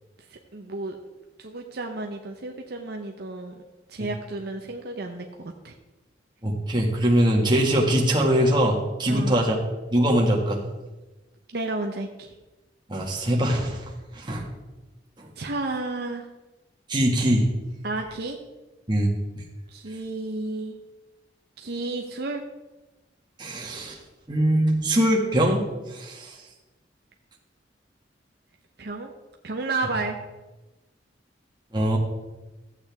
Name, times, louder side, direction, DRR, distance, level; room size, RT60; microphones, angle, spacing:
voice 1, 0.3-1.0 1.4-3.6 3.9-5.7 9.1-9.4 11.5-12.3 15.4-16.3 17.8-18.4 19.7-20.8 21.6-22.4 28.8-29.1 29.4-30.2, right 2 dB, 60° right, 2 dB, 0.8 m, -32 dB
voice 2, 6.4-9.6 9.9-10.6 12.9-13.8 14.1-14.4 15.2-15.3 16.9-17.5 18.9-19.1 23.4-24.0 24.3-26.4 31.7-32.0, right 1 dB, 25° right, -1 dB, 1.8 m, -22 dB
14.5 x 8.2 x 3.5 m, 1.1 s
head